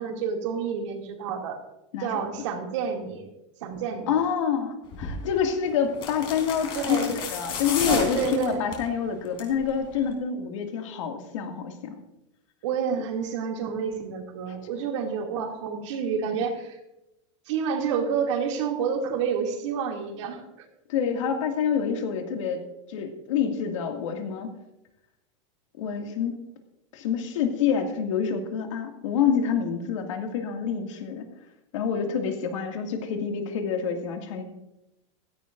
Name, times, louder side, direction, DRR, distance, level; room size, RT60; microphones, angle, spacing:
voice 1, 0.0-1.6 2.0-3.3 3.6-4.1 6.7-7.1 7.8-8.7 12.6-16.8 17.5-20.7 32.0-32.3, right 6 dB, 70° right, 2 dB, 2.6 m, -29 dB
voice 2, 1.9-2.2 4.1-12.0 20.9-22.6 22.9-24.5 25.8-26.4 26.9-31.3 31.7-34.4, left 7 dB, 80° left, 3 dB, 2.2 m, -27 dB
sound 1, 4.9-5.2 5.9-8.9 9.2-9.6 9.9-10.0, left 5 dB, 35° left, 3.5 m, -32 dB
16.0 x 14.0 x 2.6 m, 0.91 s
supercardioid pair, 155°, 16 cm